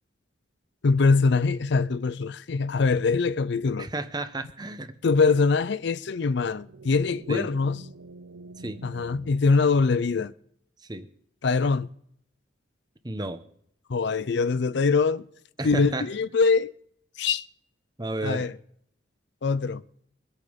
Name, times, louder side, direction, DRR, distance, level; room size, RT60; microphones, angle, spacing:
voice 1, 0.8-3.9 5.0-7.8 8.8-10.3 11.4-11.9 13.9-15.2 15.6-16.7 17.2-17.4 18.2-18.5 19.4-19.8, left 4 dB, 60° left, 0.5 m, -23 dB
voice 2, 3.8-4.9 7.3-7.5 8.6-8.8 10.8-11.1 13.0-13.4 15.6-16.1 18.0-18.5, right 2 dB, 20° right, 1.0 m, -32 dB
sound 1, 6.7-10.3, right 3 dB, 75° right, 0.6 m, -47 dB
23.0 x 8.4 x 5.3 m
head